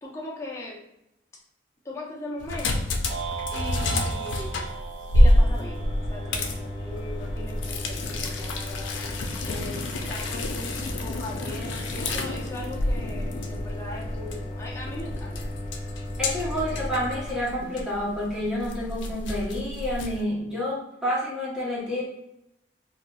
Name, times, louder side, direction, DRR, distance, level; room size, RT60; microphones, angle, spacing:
voice 1, 0.0-0.8 1.8-2.9 3.5-4.7 5.1-8.9 9.4-15.5 21.9-22.0, left 1 dB, 15° left, -4 dB, 0.7 m, -39 dB
sound 1, 2.4-20.2, left 1 dB, 85° left, 0.4 m, -28 dB
sound 2, 3.1-7.4, right 7 dB, 60° right, 0.4 m, -38 dB
sound 3, 5.3-17.2, left 1 dB, 55° left, 0.7 m, -36 dB
voice 2, 16.2-22.0, left 1 dB, 5° right, -7 dB, 1.1 m, -29 dB
3.9 x 2.1 x 2.3 m, 0.83 s
head